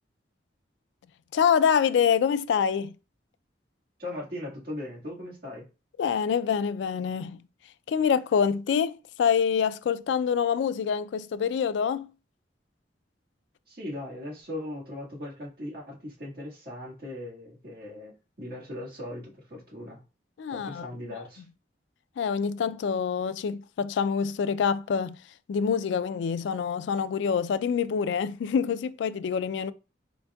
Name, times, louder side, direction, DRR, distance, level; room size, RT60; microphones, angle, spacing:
voice 1, 1.3-2.9 6.0-7.4 7.9-12.1 20.4-21.2 22.2-25.2 25.5-29.7, left 7 dB, 75° left, 0.3 m, -26 dB
voice 2, 4.0-5.7 13.7-20.0 20.5-21.4, left 1 dB, 55° right, 1.7 m, -39 dB
4.2 x 4.0 x 2.3 m
head